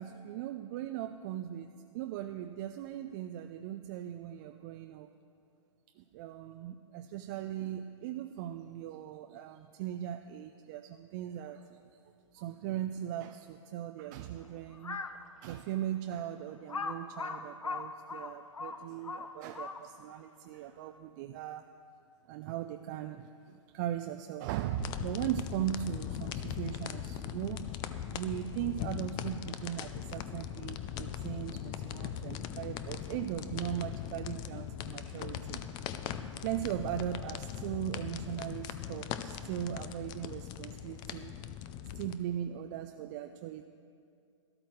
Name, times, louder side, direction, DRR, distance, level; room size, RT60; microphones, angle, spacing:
voice 1, 0.0-5.1 6.0-11.9 12.3-15.0 15.4-21.7 22.3-27.7 28.1-35.6 36.4-41.4 41.9-43.6, right 11 dB, 35° right, 7 dB, 0.4 m, -39 dB
Crow, 14.7-15.2 15.8-15.9 16.7-20.1, left 4 dB, 85° left, 0.8 m, -39 dB
sound 1, 24.8-42.2, left 10 dB, 25° left, 0.5 m, -40 dB
13.0 x 12.5 x 4.5 m, 2.4 s
hypercardioid pair, 120°, 16 cm